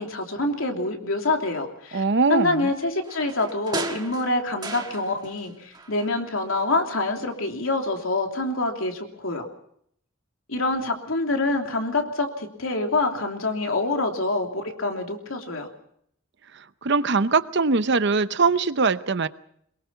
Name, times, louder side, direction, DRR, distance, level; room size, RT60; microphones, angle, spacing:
voice 1, 0.0-2.0 2.3-9.5 10.5-15.7, left 2 dB, 80° left, 3.1 m, -26 dB
voice 2, 1.9-2.7 16.8-19.3, right 4 dB, 55° right, 0.8 m, -21 dB
sound 1, 3.0-5.5 5.7-6.8 7.2-7.3, right 3 dB, 20° right, 1.5 m, -36 dB
24.0 x 22.0 x 5.8 m
head